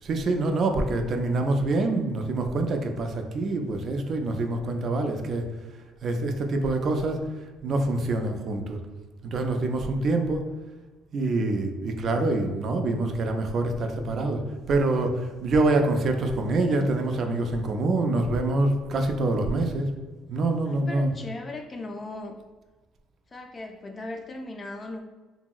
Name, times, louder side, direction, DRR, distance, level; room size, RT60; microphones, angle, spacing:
voice 1, 0.0-5.5 6.0-7.2 7.6-8.8 9.2-10.5 11.1-14.4 14.7-19.9 20.3-21.1, right 2 dB, 45° right, 5 dB, 0.3 m, -25 dB
voice 2, 20.7-22.4 23.3-25.0, left 2 dB, 25° left, 4 dB, 0.3 m, -37 dB
2.9 x 2.7 x 2.3 m, 1.2 s
cardioid pair, 120°, 0 cm